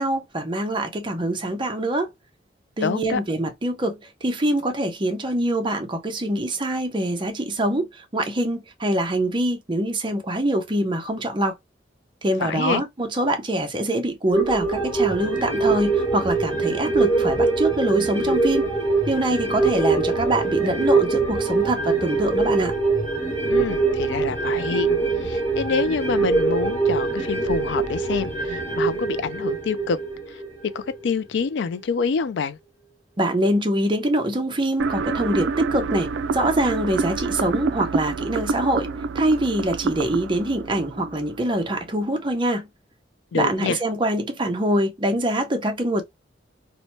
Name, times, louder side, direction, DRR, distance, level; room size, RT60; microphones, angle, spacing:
voice 1, 0.0-2.1 2.8-11.6 12.2-18.7 19.1-22.7 33.2-38.9 39.1-42.7 43.3-46.0, right 1 dB, 25° right, 0.6 m, -24 dB
voice 2, 2.8-3.2 12.4-12.8 23.5-24.9 25.2-30.0 30.3-30.4 30.7-32.6 43.3-43.8, left 5 dB, 65° left, 0.3 m, -26 dB
sound 1, 14.3-31.1 31.4-31.5, right 4 dB, 10° left, 1.3 m, -23 dB
sound 2, 34.8-41.8, right 4 dB, 70° right, 0.3 m, -27 dB
2.8 x 2.1 x 2.9 m
head